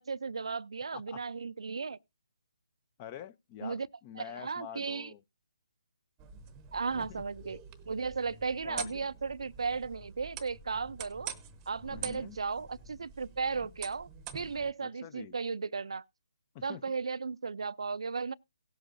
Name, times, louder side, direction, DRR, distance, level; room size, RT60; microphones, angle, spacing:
voice 1, 0.0-2.0 3.6-3.9 4.4-5.1 6.7-7.6 7.9-11.3 11.7-14.1 14.3-16.0 16.6-18.3, right 5 dB, 70° right, 0.4 m, -35 dB
voice 2, 3.0-5.2 6.9-7.2 8.6-9.1 11.9-12.4 14.8-15.4 16.5-16.9, left 10 dB, 25° left, 0.5 m, -46 dB
sound 1, 6.2-14.7, right 7 dB, 15° right, 0.9 m, -46 dB
17.5 x 7.9 x 2.6 m
figure-of-eight pair, 150°, 3 cm